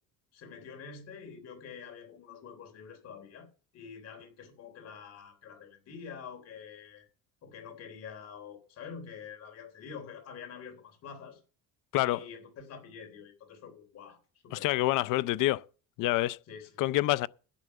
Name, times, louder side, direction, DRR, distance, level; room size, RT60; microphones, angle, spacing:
voice 1, 0.3-3.5 3.7-7.1 7.4-11.4 12.0-14.2 14.4-14.7 16.5-16.7, left 6 dB, 50° left, 3.4 m, -46 dB
voice 2, 11.9-12.2 14.5-15.7 16.0-16.4 16.8-17.3, left 17 dB, 70° left, 0.6 m, -27 dB
11.5 x 7.6 x 6.8 m
cardioid pair, 170°, 33 cm